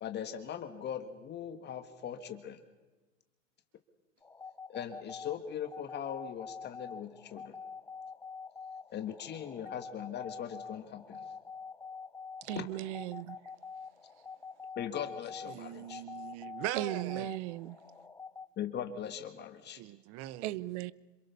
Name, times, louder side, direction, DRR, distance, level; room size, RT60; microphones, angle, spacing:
voice 1, 0.0-2.6 4.7-7.5 8.9-11.2 12.5-12.7 14.8-16.0 18.6-19.8, left 9 dB, 25° left, 1.6 m, -40 dB
sound 1, 4.2-18.5, left 5 dB, 5° left, 0.8 m, -46 dB
voice 2, 12.4-13.4 16.7-17.8 20.4-20.9, right 16 dB, 65° right, 1.0 m, -36 dB
voice 3, 15.5-17.3 19.8-20.5, right 14 dB, 40° right, 1.1 m, -41 dB
27.0 x 23.0 x 6.9 m
supercardioid pair, 140°, 38 cm